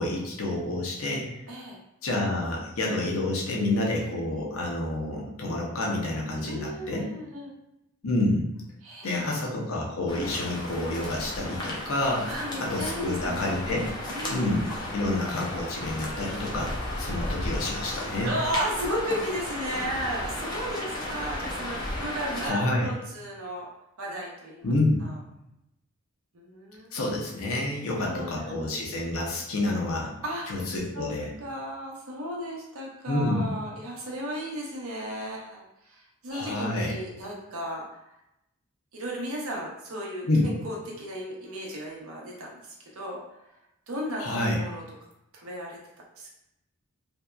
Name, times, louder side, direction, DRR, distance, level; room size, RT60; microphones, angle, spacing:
voice 1, 0.0-1.3 2.0-7.1 8.0-8.5 9.0-12.3 12.6-13.9 14.3-18.3 22.4-22.9 24.6-25.1 26.9-30.1 30.5-31.3 33.1-33.5 36.3-36.9 40.3-40.5 44.2-44.6, left 2 dB, 75° left, -1 dB, 0.6 m, -28 dB
voice 2, 1.5-1.8 6.4-7.5 8.8-9.6 12.2-13.5 14.1-14.5 18.2-23.7 24.0-24.7 25.0-25.2 26.3-27.0 28.1-29.1 30.2-30.6 30.9-31.1 31.4-38.1 38.9-43.2 43.9-44.8 45.3-45.8 46.2-46.3, equal, 80° right, -2 dB, 0.7 m, -35 dB
sound 1, 10.1-22.5, left 1 dB, 20° left, 0.4 m, -34 dB
2.6 x 2.2 x 2.2 m, 0.85 s
head